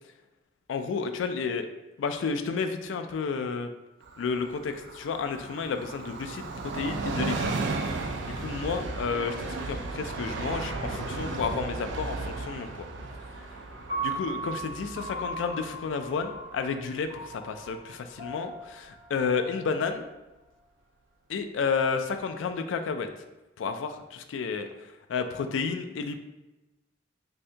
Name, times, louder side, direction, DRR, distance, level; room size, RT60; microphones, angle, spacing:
voice 1, 0.7-1.7 2.0-3.7 4.2-6.5 6.7-7.5 8.4-12.7 14.0-20.1 21.3-23.1 23.6-24.7 25.1-26.2, left 5 dB, 75° left, 7 dB, 0.3 m, -31 dB
Train, 4.0-17.3 17.7-17.8, right 3 dB, 65° right, 0.3 m, -35 dB
sound 1, 8.2-14.8, left 1 dB, 10° left, 1.4 m, -48 dB
Piano, 13.9-20.1, right 2 dB, 25° right, 1.3 m, -38 dB
2.7 x 2.7 x 3.3 m, 1.0 s
head